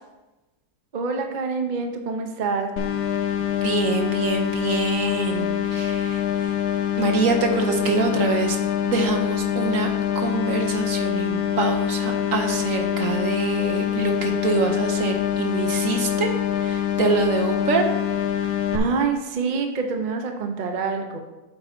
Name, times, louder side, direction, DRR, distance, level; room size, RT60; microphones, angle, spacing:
voice 1, 0.9-2.7 18.7-21.2, right 4 dB, 40° right, 4 dB, 0.7 m, -26 dB
sound 1, 2.8-18.8, left 10 dB, 70° left, 1.2 m, -25 dB
voice 2, 3.6-6.5 7.0-8.6 8.9-9.9 10.1-16.3 16.6-17.9, right 4 dB, 60° right, 4 dB, 1.0 m, -25 dB
8.6 x 8.0 x 2.7 m, 1.1 s
omnidirectional pair, 1.7 m